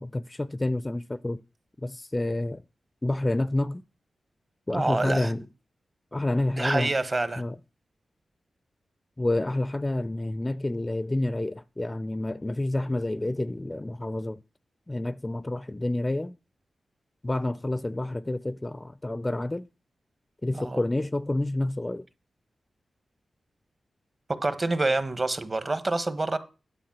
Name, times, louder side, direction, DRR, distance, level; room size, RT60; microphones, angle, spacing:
voice 1, 0.0-1.4 1.8-2.6 3.0-3.8 4.7-5.4 6.1-6.9 7.4-7.6 9.2-14.4 14.9-16.4 17.2-19.7 20.4-22.1, left 1 dB, 20° left, 0.5 m, -29 dB
voice 2, 4.7-5.3 6.6-7.4 20.5-20.8 24.4-26.4, right 2 dB, 35° right, 1.2 m, -27 dB
10.0 x 5.4 x 7.3 m
cardioid pair, 70°, 0 cm